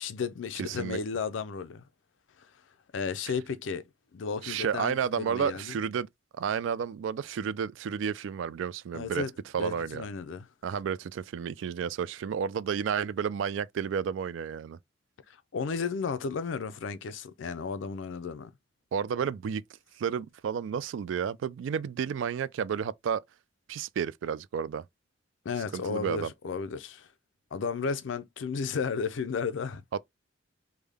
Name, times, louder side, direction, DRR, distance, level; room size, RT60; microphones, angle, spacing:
voice 1, 0.0-1.8 2.9-3.8 4.1-5.7 8.9-9.3 9.6-10.5 15.3-18.5 25.4-27.1 27.5-30.0, left 5 dB, 80° left, 0.4 m, -33 dB
voice 2, 0.6-1.0 4.4-6.1 6.3-9.2 9.5-10.0 10.6-14.8 18.9-19.6 20.0-23.2 23.7-24.8 25.7-26.3, right 7 dB, 80° right, 0.3 m, -31 dB
3.5 x 2.1 x 3.4 m
head